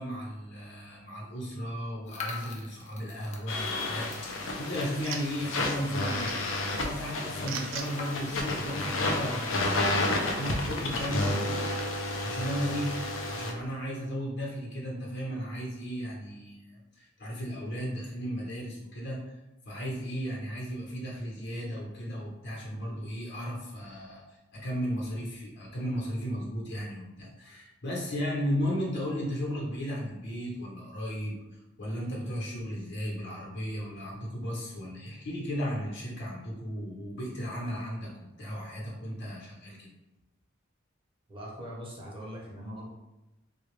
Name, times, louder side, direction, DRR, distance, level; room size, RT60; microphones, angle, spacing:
voice 1, 0.0-11.6 11.9-12.9 13.3-19.4 19.7-24.2 24.5-31.4 31.8-39.9, equal, 60° left, -3 dB, 1.0 m, -35 dB
sound 1, 2.0-6.1 6.5-6.6 6.8-6.9 7.7-9.5, left 4 dB, 40° left, 0.5 m, -44 dB
sound 2, 3.5-13.5, left 2 dB, 80° left, 0.6 m, -31 dB
sound 3, 3.9-9.3, right 6 dB, 80° right, 0.4 m, -45 dB
voice 2, 41.3-42.9, equal, 25° right, -3 dB, 0.8 m, -41 dB
3.6 x 2.3 x 3.2 m, 1.0 s
head